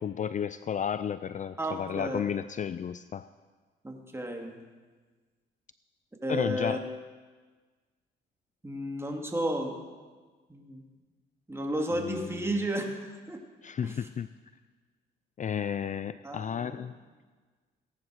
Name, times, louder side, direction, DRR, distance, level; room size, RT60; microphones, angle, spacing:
voice 1, 0.0-3.3 6.3-6.9 12.0-12.5 13.6-14.3 15.4-16.9, left 8 dB, 40° left, 14 dB, 0.4 m, -33 dB
voice 2, 1.6-2.2 3.8-4.6 6.2-6.8 8.6-9.8 10.5-10.8 11.5-12.9 13.3-13.4 13.8-14.0 16.2-16.8, right 1 dB, 10° right, 1 dB, 2.6 m, -32 dB
17.5 x 11.0 x 6.4 m, 1.4 s
cardioid pair, 90°, 20 cm